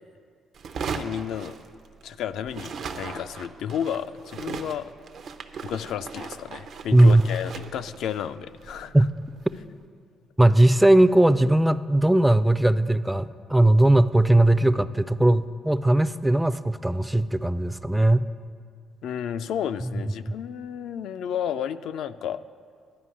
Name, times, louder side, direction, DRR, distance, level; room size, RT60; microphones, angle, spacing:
sound 1, 0.5-2.2 2.4-9.7, right 5 dB, 65° right, 0.6 m, -38 dB
voice 1, 0.9-1.6 2.0-4.9 5.6-9.0 19.0-22.4, left 9 dB, 80° left, 11 dB, 0.3 m, -32 dB
voice 2, 6.9-7.3 8.9-9.1 10.4-18.2, right 1 dB, 5° right, 14 dB, 0.3 m, -19 dB
11.0 x 5.2 x 8.5 m, 2.1 s
cardioid pair, 90°, 0 cm